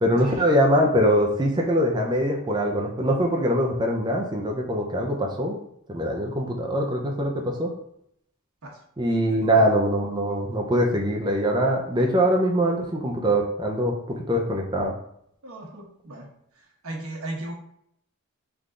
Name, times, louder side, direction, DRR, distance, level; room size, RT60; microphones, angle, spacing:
voice 1, 0.0-5.6 5.9-7.7 9.0-14.9, equal, 20° right, 0 dB, 0.5 m, -23 dB
voice 2, 9.3-9.7 15.4-16.3 16.8-17.5, right 1 dB, 85° right, -1 dB, 1.2 m, -37 dB
3.7 x 3.4 x 3.7 m, 0.73 s
head